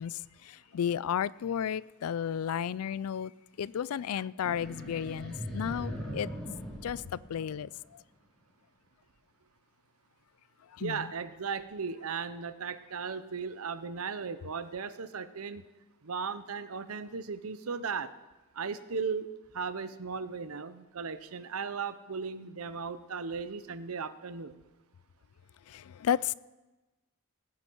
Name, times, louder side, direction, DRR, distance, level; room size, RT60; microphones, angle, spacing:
voice 1, 0.0-3.3 3.6-6.3 6.8-7.7 10.8-11.1 25.7-26.3, left 8 dB, 75° left, 0.4 m, -33 dB
sound 1, 4.4-7.9, equal, 5° left, 3.2 m, -40 dB
voice 2, 10.8-15.6 16.0-18.1 18.5-19.3 19.5-24.5, right 5 dB, 70° right, 0.7 m, -36 dB
18.5 x 9.7 x 4.6 m
head